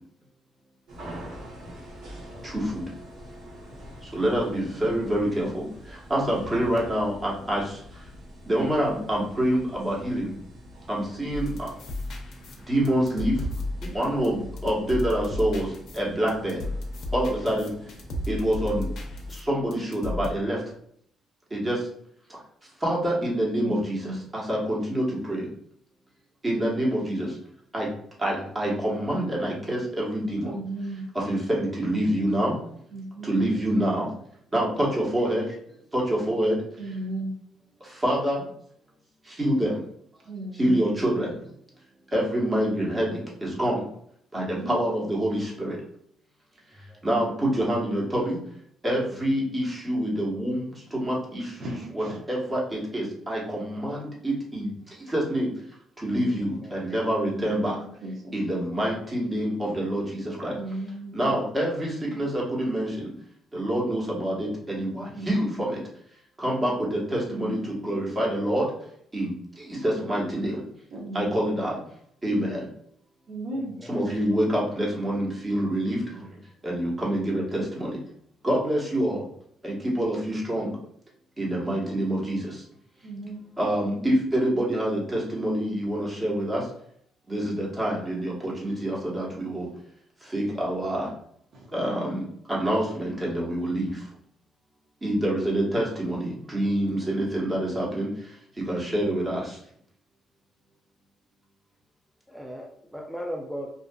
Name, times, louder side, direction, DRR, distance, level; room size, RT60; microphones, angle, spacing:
sound 1, 0.9-19.3, equal, 85° right, 0.9 m, -45 dB
voice 1, 2.4-2.9 4.0-8.1 8.5-10.4 10.9-11.7 12.7-13.5 13.8-16.6 17.1-17.7 18.3-18.9 19.3-20.6 21.5-21.9 22.3-22.4 22.8-25.5 26.4-27.4 27.7-27.9 28.2-30.6 31.1-32.7 33.2-34.1 34.5-36.6 37.8-38.5 39.2-39.8 40.5-41.5 42.1-43.8 44.3-45.8 46.7-48.4 48.8-55.5 56.0-57.8 58.3-60.6 61.1-63.1 63.5-65.8 66.4-68.7 69.1-70.6 71.1-71.8 72.2-72.7 73.9-76.0 76.6-77.9 78.4-79.2 79.6-80.8 81.4-82.6 83.6-86.7 87.3-89.7 90.2-91.1 91.7-94.1 95.0-99.6, right 1 dB, 25° right, -4 dB, 1.0 m, -27 dB
sound 2, 11.3-20.3, left 2 dB, 70° left, 0.5 m, -34 dB
voice 2, 30.4-31.1 32.9-33.3 36.8-37.3 40.3-41.2 44.3-44.9 51.6-52.2 56.1-56.4 57.2-58.3 60.5-61.4 65.1-65.7 67.3-67.9 70.9-71.4 73.3-73.7 83.0-83.4 91.5-91.7, right 2 dB, 65° right, 0 dB, 0.6 m, -35 dB
voice 3, 73.5-74.0 102.3-103.7, equal, 5° right, 0 dB, 0.3 m, -37 dB
2.6 x 2.4 x 2.2 m, 0.67 s
cardioid pair, 90°, 0 cm